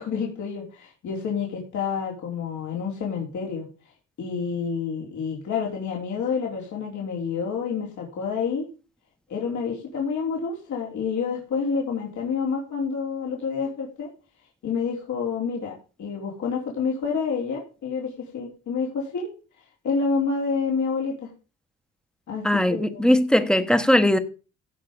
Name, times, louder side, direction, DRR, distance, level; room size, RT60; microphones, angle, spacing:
voice 1, 0.0-3.7 4.2-8.7 9.3-14.1 14.6-19.3 19.8-21.3 22.3-23.2, left 5 dB, 70° left, 3.7 m, -28 dB
voice 2, 22.4-24.2, left 1 dB, 5° left, 1.2 m, -19 dB
16.0 x 5.7 x 5.1 m
cardioid pair, 90°, 30 cm